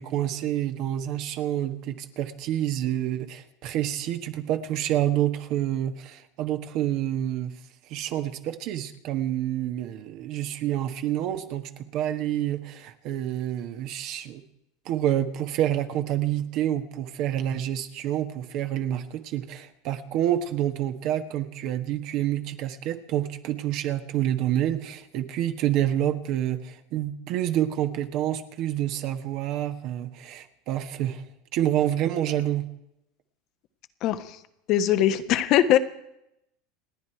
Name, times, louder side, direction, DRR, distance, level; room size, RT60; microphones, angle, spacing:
voice 1, 0.0-7.5 7.9-14.4 14.8-31.2 31.5-32.6, right 12 dB, 55° right, 8 dB, 1.4 m, -28 dB
voice 2, 34.0-34.4 34.7-35.8, left 11 dB, 50° left, 11 dB, 1.2 m, -21 dB
29.0 x 9.7 x 4.6 m, 0.82 s
supercardioid pair, 120°, 0 cm